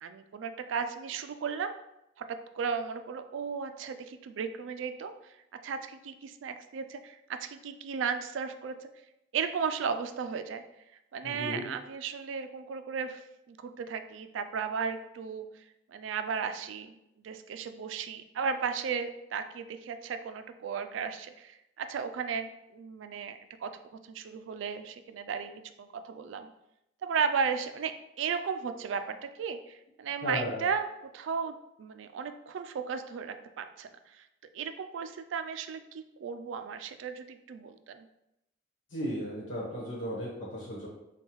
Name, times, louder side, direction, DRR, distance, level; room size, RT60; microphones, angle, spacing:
voice 1, 0.0-1.7 2.2-2.3 2.5-5.1 5.6-8.9 9.3-10.6 11.1-13.2 13.5-15.6 15.9-17.0 17.2-23.7 24.0-26.5 27.0-27.9 28.2-30.9 31.1-34.3 34.5-38.1, right 6 dB, 75° right, 9 dB, 0.3 m, -35 dB
voice 2, 11.2-11.7 30.2-30.6 38.9-40.9, equal, 80° left, -5 dB, 1.2 m, -35 dB
5.3 x 2.3 x 3.0 m, 0.86 s
head